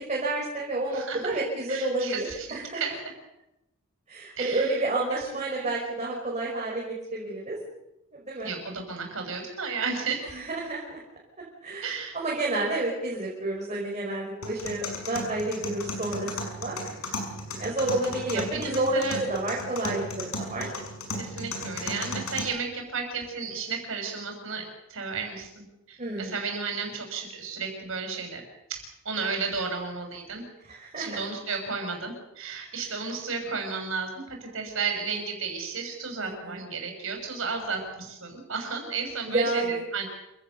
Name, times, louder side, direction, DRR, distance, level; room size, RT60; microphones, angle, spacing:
voice 1, 0.0-2.8 4.1-7.6 8.1-8.5 10.3-11.0 11.6-16.8 17.6-20.7 26.0-26.3 30.7-31.1 36.2-36.6 39.3-39.8, right 2 dB, 35° right, -4 dB, 5.4 m, -30 dB
voice 2, 0.9-1.4 1.7-3.1 4.4-4.8 5.1-5.7 8.4-10.3 11.8-12.2 18.3-19.2 21.2-28.4 28.7-30.4 31.0-40.1, right 5 dB, 70° right, 3 dB, 6.6 m, -33 dB
sound 1, 14.4-22.4, left 2 dB, 85° left, 6.1 m, -35 dB
27.5 x 17.0 x 7.0 m, 0.91 s
head